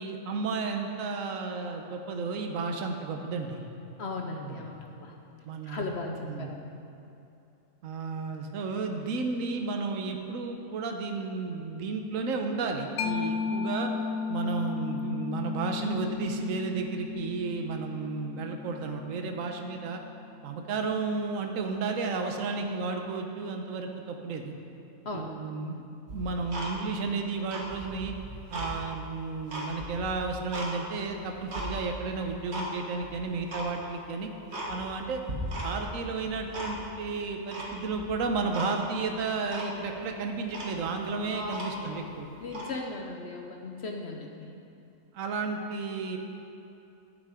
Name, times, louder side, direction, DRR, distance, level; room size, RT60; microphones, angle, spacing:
voice 1, 0.0-3.7 4.4-4.7 5.4-5.9 6.2-6.5 7.8-13.9 14.3-20.0 20.4-24.6 25.1-25.8 26.1-28.1 28.5-34.3 34.7-35.2 35.6-42.3 45.1-46.2, right 4 dB, 70° right, 4 dB, 1.2 m, -33 dB
voice 2, 4.0-5.1 5.6-6.7 25.0-25.3 41.3-42.0 42.4-44.5, left 3 dB, 55° left, 2 dB, 0.9 m, -37 dB
Mallet percussion, 13.0-20.3, left 5 dB, 80° left, 1.0 m, -35 dB
Tick-tock, 26.1-27.1 27.4-28.7 29.2-30.7 31.1-31.7 32.2-32.7 33.0-33.1 33.5-33.7 34.1-34.2 34.5-35.0 35.3-35.9 36.2-37.0 37.5-38.1 38.5-38.7 39.1-39.2 39.5-39.7 40.2-40.3 40.5-42.0 42.4-42.7, equal, 50° right, 2.0 m, -37 dB
11.5 x 8.7 x 4.9 m, 2.8 s
omnidirectional pair, 1.5 m